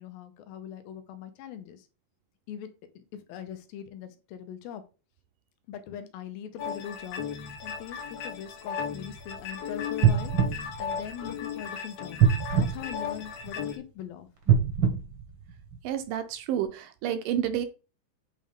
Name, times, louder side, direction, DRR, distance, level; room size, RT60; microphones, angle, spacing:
voice 1, 0.0-1.9 2.5-2.7 3.0-4.8 5.7-7.3 7.6-12.2 12.5-14.3, left 9 dB, 85° left, 9 dB, 2.6 m, -41 dB
sound 1, 6.6-13.8, left 7 dB, 70° left, 1.6 m, -36 dB
sound 2, 10.0-11.6 12.2-13.7 14.4-16.1 16.6-16.7, right 7 dB, 55° right, 1.4 m, -25 dB
voice 2, 15.8-17.7, right 10 dB, 75° right, 8 dB, 2.2 m, -30 dB
8.7 x 3.7 x 3.5 m, 0.32 s
omnidirectional pair, 4.2 m